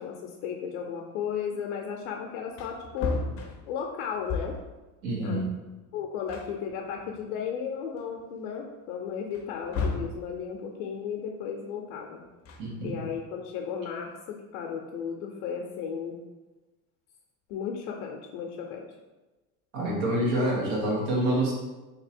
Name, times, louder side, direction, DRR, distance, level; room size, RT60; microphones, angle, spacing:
voice 1, 0.0-3.2 3.7-4.6 5.2-5.5 5.9-12.2 12.8-14.2 14.5-16.2 17.5-18.9, left 7 dB, 85° left, 1 dB, 0.6 m, -34 dB
Wood, 2.5-4.8 5.9-6.0 6.3-7.5 8.0-8.1 9.3-10.2 12.2-13.2, left 3 dB, 35° left, 0.5 m, -34 dB
voice 2, 5.0-5.5 12.6-13.0 19.7-21.5, right 1 dB, 75° right, -3 dB, 1.4 m, -27 dB
2.9 x 2.7 x 4.2 m, 1.1 s
supercardioid pair, 130°, 43 cm